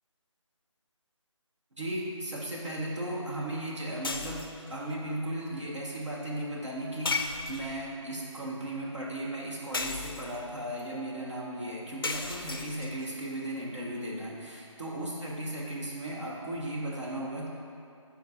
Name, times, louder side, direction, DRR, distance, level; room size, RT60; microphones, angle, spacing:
voice 1, 1.8-17.5, right 1 dB, 65° right, -4 dB, 1.6 m, -36 dB
sound 1, 4.0-4.7 7.1-7.9 9.7-10.5 12.0-13.1, left 4 dB, 45° left, 0.4 m, -34 dB
13.0 x 4.5 x 2.7 m, 2.7 s
figure-of-eight pair, 165°, 16 cm